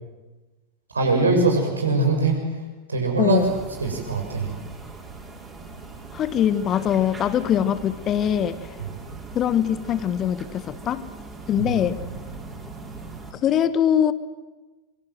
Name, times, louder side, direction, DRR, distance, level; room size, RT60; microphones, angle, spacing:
voice 1, 0.9-2.6 2.9-3.4 3.8-4.6 8.8-8.9 11.6-11.7, right 3 dB, 75° right, 3 dB, 6.4 m, -22 dB
voice 2, 3.2-3.5 6.1-8.7 9.3-11.1 11.5-12.0 13.4-14.1, left 9 dB, 30° left, 15 dB, 1.1 m, -22 dB
sound 1, 3.4-13.3, right 4 dB, 15° right, 5.5 m, -40 dB
26.0 x 23.5 x 7.8 m, 1.2 s
figure-of-eight pair, 90°, 0 cm